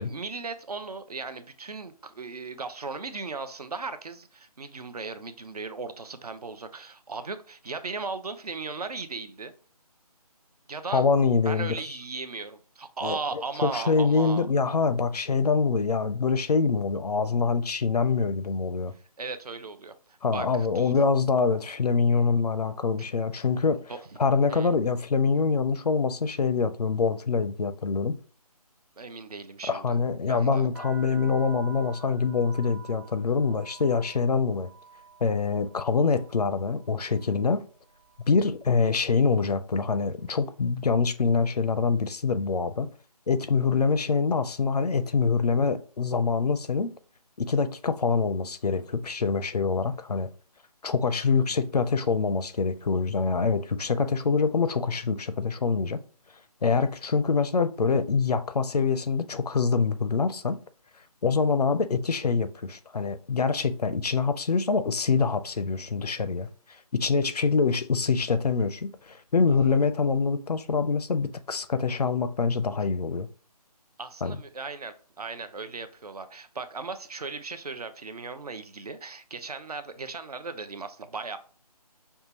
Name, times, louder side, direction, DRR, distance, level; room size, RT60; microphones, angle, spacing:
voice 1, 0.0-9.5 10.7-11.0 11.4-14.5 19.2-19.9 20.3-20.9 23.0-23.1 23.9-24.0 24.5-24.7 29.0-30.0 30.3-30.7 69.5-69.6 72.8-72.9 74.0-81.4, right 4 dB, 75° right, 0.6 m, -37 dB
voice 2, 10.9-11.8 13.0-18.9 20.2-23.8 24.2-28.2 29.7-34.7 35.2-37.6 38.3-42.9 43.3-46.9 47.4-50.3 50.8-56.0 56.6-60.6 61.2-66.5 66.9-73.3 74.2-74.4, left 5 dB, 75° left, 0.5 m, -25 dB
sound 1, 30.7-38.6 38.9-39.5 40.2-40.5 40.7-42.2, right 6 dB, 35° right, 0.8 m, -50 dB
5.5 x 2.3 x 2.8 m
figure-of-eight pair, 155°, 20 cm